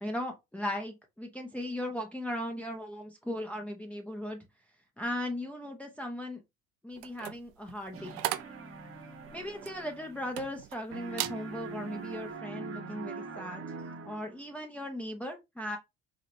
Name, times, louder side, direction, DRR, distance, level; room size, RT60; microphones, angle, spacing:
voice 1, 0.0-4.4 5.0-6.4 6.8-8.1 9.3-13.6 14.0-15.8, left 1 dB, 5° left, 0.9 m, -37 dB
sound 1, 6.9-10.8 11.1-11.4 11.9-12.2, right 16 dB, 75° right, 0.5 m, -38 dB
sound 2, 7.9-10.7 10.9-14.5, right 4 dB, 40° right, 1.2 m, -43 dB
5.0 x 2.4 x 3.0 m
hypercardioid pair, 70°, 34 cm